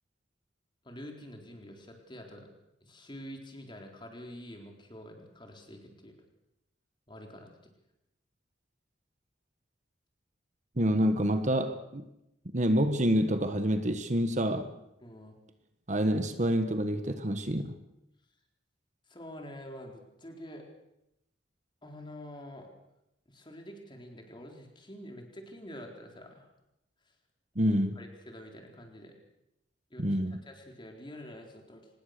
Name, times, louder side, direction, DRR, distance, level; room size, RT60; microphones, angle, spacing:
voice 1, 0.8-2.5 2.8-6.2 7.1-7.5 15.0-15.4 19.1-20.7 21.8-22.7 23.3-26.5 28.0-29.2 29.9-30.2 30.5-31.9, equal, 25° left, 2 dB, 4.0 m, -47 dB
voice 2, 10.8-12.0 12.5-14.7 15.9-17.8 27.5-28.0 30.0-30.4, equal, 40° right, 9 dB, 1.3 m, -27 dB
25.0 x 20.0 x 6.7 m, 0.87 s
head